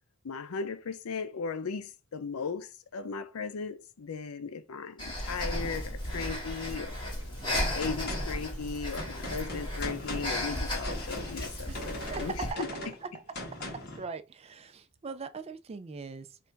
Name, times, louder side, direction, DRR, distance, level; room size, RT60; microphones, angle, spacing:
voice 1, 0.2-6.9 7.7-12.7, left 5 dB, 80° left, 0.5 m, -37 dB
Breathing, 5.0-12.5, left 1 dB, 20° left, 1.7 m, -35 dB
voice 2, 7.4-7.8 11.7-12.6 13.1-13.2 14.0-16.4, right 5 dB, 30° right, 0.3 m, -41 dB
Gunshot gunfire, 7.5-14.0, left 1 dB, 50° left, 1.4 m, -40 dB
3.3 x 2.5 x 4.4 m
head